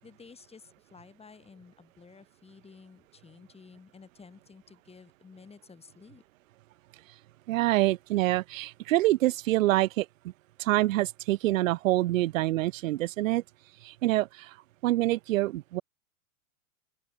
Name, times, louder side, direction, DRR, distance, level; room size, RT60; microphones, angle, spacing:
voice 1, 0.0-6.2, left 5 dB, 15° left, 6.9 m, -53 dB
voice 2, 7.5-10.1 10.6-13.4 13.8-14.6 14.8-15.8, right 16 dB, 65° right, 1.0 m, -26 dB
open air
hypercardioid pair, 110°, 43 cm